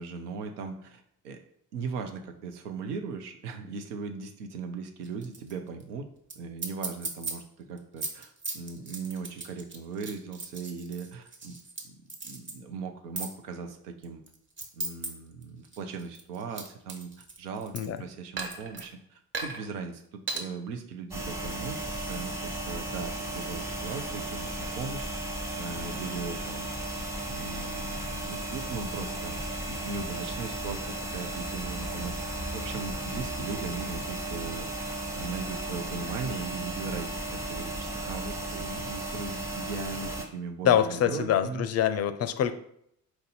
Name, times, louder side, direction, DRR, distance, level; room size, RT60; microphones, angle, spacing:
voice 1, 0.0-1.4 1.7-6.1 6.4-11.6 11.8-12.0 12.2-14.2 14.7-17.1 17.4-21.8 22.1-25.1 25.6-26.7 27.3-29.4 29.7-34.9 35.1-41.7, right 5 dB, 85° right, 6 dB, 0.6 m, -38 dB
sound 1, 5.0-5.5 5.8-5.9 6.3-6.4 6.6-7.3 7.8-11.8 12.1-12.5 13.2-13.3 14.0-15.1 15.4-18.0 18.4-18.8 19.3-19.6 20.3-20.4, right 3 dB, 25° right, 1.0 m, -36 dB
sound 2, 21.1-40.3, right 1 dB, 5° right, 0.9 m, -35 dB
voice 2, 40.6-42.5, left 9 dB, 35° left, 12 dB, 0.4 m, -25 dB
4.3 x 2.6 x 4.0 m, 0.72 s
figure-of-eight pair, 45°, 46 cm